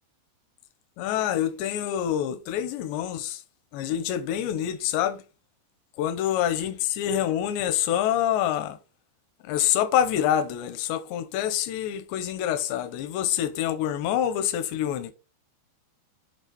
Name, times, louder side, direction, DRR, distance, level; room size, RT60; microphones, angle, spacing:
voice 1, 1.0-3.4 3.7-5.2 6.0-8.8 9.4-15.1, left 10 dB, 80° left, 3.0 m, -26 dB
11.0 x 3.8 x 4.1 m
omnidirectional pair, 5.1 m